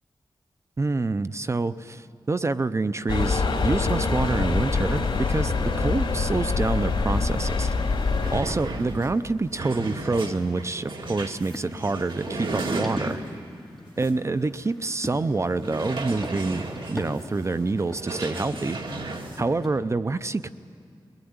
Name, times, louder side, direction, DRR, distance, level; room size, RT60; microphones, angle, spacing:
voice 1, 0.8-7.7 8.3-13.2 14.0-18.8 19.4-20.5, right 3 dB, 35° right, 13 dB, 0.5 m, -27 dB
sound 1, 3.1-8.4, left 4 dB, 75° left, 3.0 m, -24 dB
sound 2, 7.4-7.5 7.8-13.5 14.0-14.1 14.5-14.6 15.6-19.4, right 2 dB, 65° right, 2.1 m, -35 dB
sound 3, 11.1-19.8, left 1 dB, ahead, 4.2 m, -41 dB
23.0 x 19.5 x 9.6 m, 2.4 s
wide cardioid pair, 95°, 9 cm